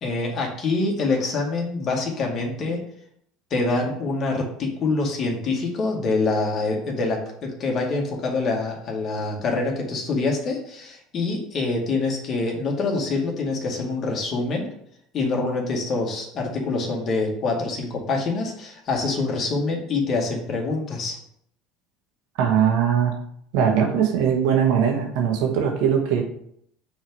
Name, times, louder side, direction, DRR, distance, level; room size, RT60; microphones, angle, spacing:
voice 1, 0.0-2.8 3.5-14.7 15.1-21.2, left 3 dB, 45° left, 0 dB, 2.0 m, -25 dB
voice 2, 22.4-23.1 23.5-26.2, right 8 dB, 65° right, 3 dB, 1.4 m, -20 dB
6.2 x 3.7 x 4.7 m, 0.70 s
hypercardioid pair, 80°, 0 cm